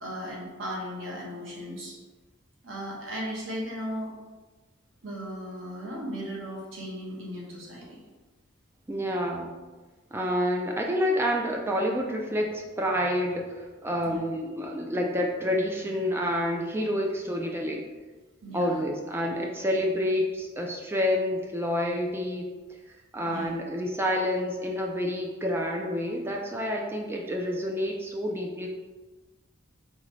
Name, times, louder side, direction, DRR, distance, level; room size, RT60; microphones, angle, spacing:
voice 1, 0.0-2.0 2.6-4.1 5.0-8.0 14.1-14.2 18.4-18.9 23.3-23.5, equal, 70° right, -3 dB, 1.1 m, -36 dB
voice 2, 8.9-9.6 10.1-17.9 18.5-22.5 23.1-28.7, equal, 10° right, 0 dB, 0.3 m, -28 dB
3.8 x 3.1 x 3.1 m, 1.3 s
head